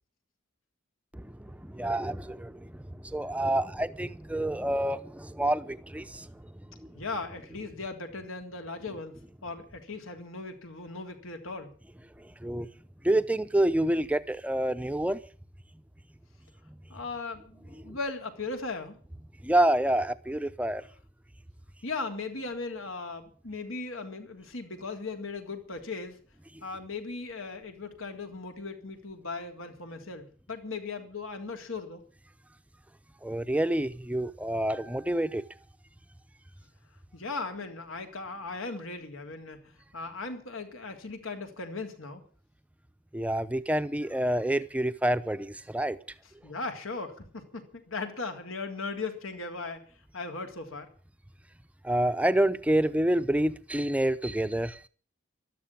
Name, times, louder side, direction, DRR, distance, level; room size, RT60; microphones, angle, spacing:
voice 1, 1.6-2.5 3.0-6.3 12.4-12.7 13.0-15.2 19.4-20.8 33.2-35.4 43.1-46.0 51.8-54.8, right 1 dB, 5° right, 0.7 m, -27 dB
voice 2, 6.9-11.7 16.9-19.0 21.8-26.2 26.6-32.0 37.1-42.2 46.2-49.9 50.1-50.9, left 3 dB, 80° left, 3.4 m, -38 dB
13.5 x 13.0 x 8.4 m
head